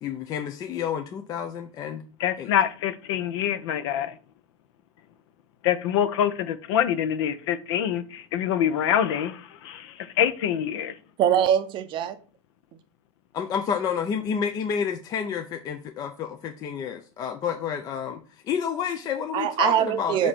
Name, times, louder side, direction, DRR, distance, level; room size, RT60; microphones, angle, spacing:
voice 1, 0.0-2.0 2.4-2.5 13.3-20.3, left 7 dB, 25° left, 0.4 m, -30 dB
voice 2, 2.2-4.1 5.6-10.9, left 9 dB, 65° left, 0.8 m, -25 dB
voice 3, 11.2-12.2 19.3-20.3, right 10 dB, 30° right, 0.5 m, -23 dB
7.6 x 2.7 x 5.9 m
supercardioid pair, 150°, 16 cm